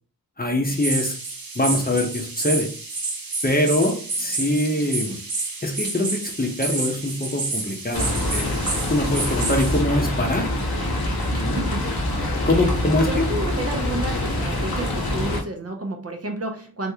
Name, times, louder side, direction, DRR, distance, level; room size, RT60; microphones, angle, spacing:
voice 1, 0.4-1.2 1.5-2.7 3.4-5.2 5.6-8.6 8.9-10.5 11.4-11.6 12.4-13.3, left 1 dB, 25° left, 1 dB, 0.8 m, -23 dB
sound 1, 0.6-9.8, right 3 dB, 65° right, 0.9 m, -29 dB
sound 2, 7.9-15.4, left 1 dB, 70° left, 1.0 m, -25 dB
voice 2, 11.3-12.1 13.1-16.9, right 2 dB, 40° right, 4 dB, 0.6 m, -31 dB
3.4 x 2.6 x 2.8 m, 0.41 s
wide cardioid pair, 75°, 38 cm